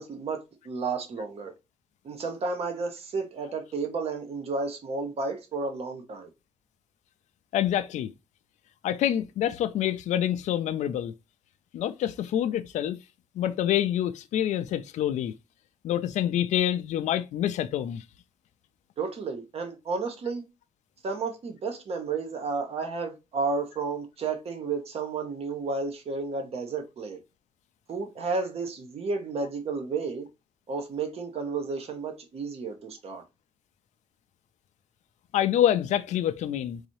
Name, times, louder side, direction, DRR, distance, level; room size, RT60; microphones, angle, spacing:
voice 1, 0.0-1.5 2.0-6.3 19.0-20.4 21.0-27.2 27.9-30.3 30.7-33.2, right 4 dB, 55° right, 1.0 m, -32 dB
voice 2, 7.5-8.1 8.8-11.1 11.7-13.0 13.4-15.3 15.8-18.0 35.3-36.8, left 11 dB, 75° left, 0.4 m, -26 dB
3.9 x 2.7 x 3.0 m
cardioid pair, 100°, 12 cm